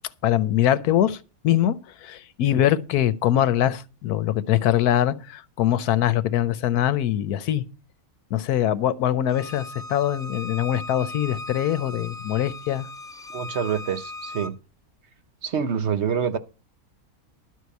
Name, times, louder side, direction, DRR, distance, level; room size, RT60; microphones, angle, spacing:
voice 1, 0.2-1.2 1.4-7.7 8.3-12.9, left 11 dB, 90° left, 1.3 m, -23 dB
Bowed string instrument, 9.3-14.5, left 2 dB, 5° left, 0.6 m, -38 dB
voice 2, 13.3-14.6 15.4-16.4, right 7 dB, 55° right, 0.9 m, -26 dB
12.0 x 4.8 x 8.2 m
omnidirectional pair, 1.6 m